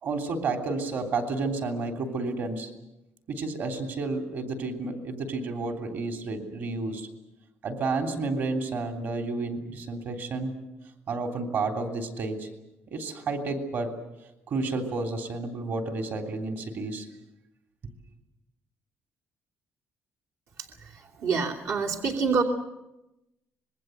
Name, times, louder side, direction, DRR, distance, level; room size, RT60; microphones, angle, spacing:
voice 1, 0.0-2.7 3.3-7.1 7.6-10.6 11.1-12.5 12.9-13.9 14.5-17.1, right 3 dB, 55° right, 4 dB, 3.3 m, -31 dB
voice 2, 21.2-22.4, right 5 dB, 80° right, 0 dB, 2.9 m, -26 dB
26.0 x 21.5 x 8.0 m, 0.94 s
cardioid pair, 155°, 4 cm